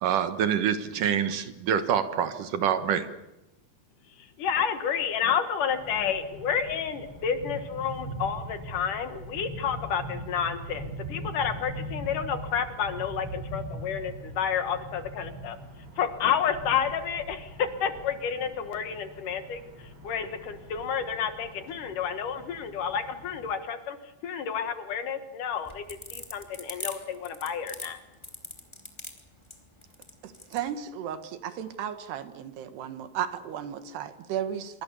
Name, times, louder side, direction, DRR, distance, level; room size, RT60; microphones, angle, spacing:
voice 1, 0.0-3.1, right 8 dB, 65° right, 10 dB, 2.5 m, -26 dB
voice 2, 4.4-15.6 16.0-24.0 24.2-28.0, left 7 dB, 60° left, 9 dB, 2.7 m, -30 dB
sound 1, 5.7-23.5, right 1 dB, 35° right, 4.7 m, -42 dB
sound 2, 25.5-30.7, left 1 dB, 10° left, 1.9 m, -40 dB
voice 3, 30.2-31.2 31.4-34.8, right 9 dB, 90° right, 10 dB, 3.6 m, -34 dB
26.5 x 24.5 x 7.0 m, 0.95 s
omnidirectional pair, 4.6 m